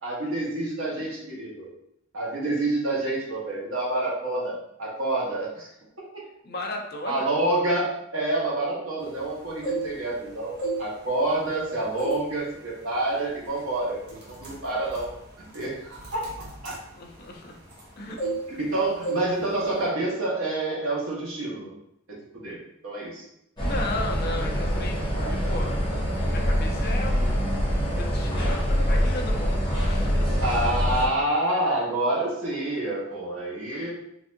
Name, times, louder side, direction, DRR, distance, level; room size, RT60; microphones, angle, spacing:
voice 1, 0.0-1.7 2.1-5.7 6.0-6.1 7.1-15.1 15.5-16.7 18.6-21.7 22.3-22.6 22.8-23.2 25.1-25.6 30.4-33.9, right 2 dB, 75° right, -4 dB, 1.2 m, -28 dB
voice 2, 6.4-7.3 17.0-17.6 18.0-18.2 18.5-18.6 23.6-25.8 26.2-27.5 27.9-30.4 33.7-33.9, left 1 dB, 50° left, 1 dB, 0.6 m, -35 dB
sound 1, 9.4-10.2 10.5-11.6 12.0-12.3 12.7-12.9 13.5-13.7 14.0-17.9 18.2-18.7 19.0-19.3 19.6-19.9, right 3 dB, 50° right, 1.0 m, -32 dB
sound 2, 23.6-31.1, equal, 20° left, 0.9 m, -25 dB
4.0 x 2.6 x 2.5 m, 0.78 s
head